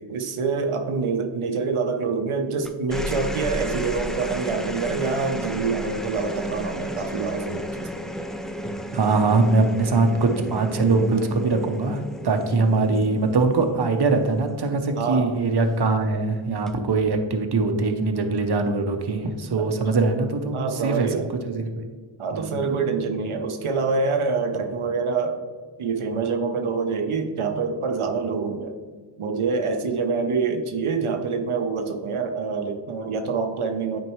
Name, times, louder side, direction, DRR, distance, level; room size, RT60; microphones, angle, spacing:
voice 1, 0.0-8.0 15.0-15.3 19.6-19.7 20.5-21.3 22.2-25.4 25.8-28.7 29.2-34.0, right 4 dB, 90° right, 4 dB, 0.7 m, -26 dB
sound 1, 2.6-15.3 16.5-16.9, equal, ahead, 0.4 m, -33 dB
voice 2, 8.9-21.1 21.5-21.8 22.3-22.6, right 3 dB, 55° right, 5 dB, 0.8 m, -22 dB
9.2 x 4.5 x 3.0 m, 1.5 s
wide cardioid pair, 65°, 48 cm